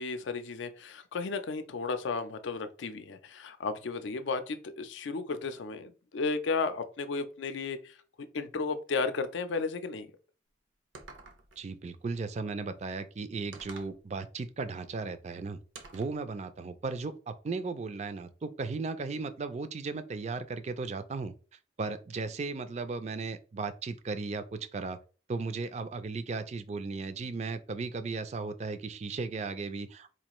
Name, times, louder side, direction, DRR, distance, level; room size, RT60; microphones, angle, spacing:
voice 1, 0.0-10.1, left 4 dB, 80° left, 0.5 m, -34 dB
sound 1, 10.9-11.6 13.5-14.0 15.8-16.2, right 4 dB, 90° right, 0.7 m, -48 dB
voice 2, 11.6-15.6 15.9-21.3 21.8-25.0 25.3-30.1, right 4 dB, 35° right, 0.3 m, -36 dB
4.3 x 2.4 x 3.0 m
head